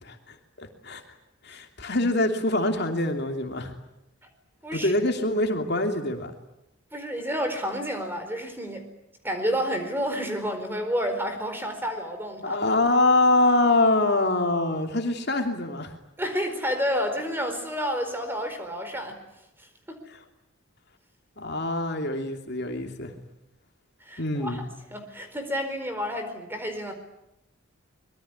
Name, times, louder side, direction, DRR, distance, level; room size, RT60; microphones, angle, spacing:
voice 1, 0.0-1.0 1.4-3.7 4.7-6.3 12.4-15.9 20.1-20.2 21.4-23.1 24.2-24.7, left 2 dB, 50° left, 4 dB, 2.9 m, -24 dB
voice 2, 6.9-8.9 9.2-12.6 16.2-19.2 19.6-20.0 24.0-26.9, equal, 10° right, 6 dB, 4.5 m, -30 dB
25.0 x 22.5 x 9.8 m, 0.87 s
head